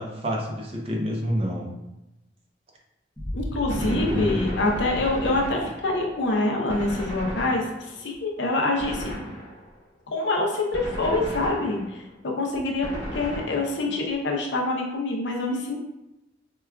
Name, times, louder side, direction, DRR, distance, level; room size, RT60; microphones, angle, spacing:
voice 1, 0.0-1.7 3.8-4.4, equal, 30° right, -1 dB, 0.5 m, -28 dB
Boom, 3.2-6.1, equal, 10° left, 0.7 m, -36 dB
voice 2, 3.3-9.1 10.1-15.8, left 2 dB, 70° left, 0 dB, 0.6 m, -26 dB
Gunshot gunfire, 3.7-6.2 6.7-8.1 8.8-9.8 10.7-12.1 12.8-14.1, equal, 25° left, 1.1 m, -35 dB
4.7 x 2.2 x 2.3 m, 0.93 s
head